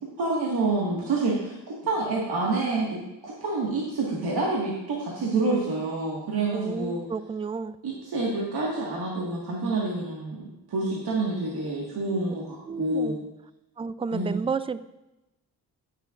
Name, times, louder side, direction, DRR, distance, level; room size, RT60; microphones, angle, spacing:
voice 1, 0.2-1.6 1.8-3.0 3.2-7.0 7.8-13.2 14.1-14.4, right 3 dB, 75° right, -4 dB, 1.8 m, -28 dB
voice 2, 6.5-7.8 12.7-13.2 13.8-14.8, right 5 dB, 15° right, 15 dB, 0.4 m, -31 dB
15.0 x 6.8 x 2.5 m, 0.96 s
cardioid pair, 65°, 39 cm